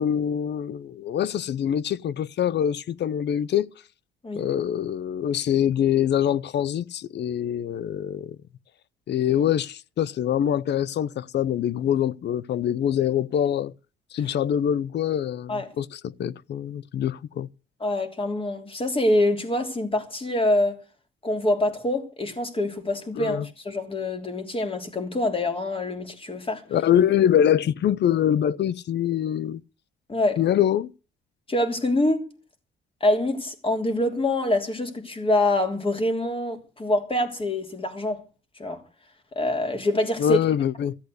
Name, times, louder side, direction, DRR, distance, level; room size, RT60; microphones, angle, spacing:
voice 1, 0.0-3.7 4.4-8.4 9.1-13.7 14.1-17.5 23.2-23.5 26.7-29.6 30.4-30.9 40.2-41.0, left 10 dB, 60° left, 0.6 m, -24 dB
voice 2, 17.8-20.8 21.2-26.6 30.1-30.4 31.5-32.3 33.0-38.2 38.6-38.8 39.3-40.4, left 1 dB, 25° left, 3.1 m, -25 dB
14.5 x 8.1 x 8.2 m
cardioid pair, 90°, 20 cm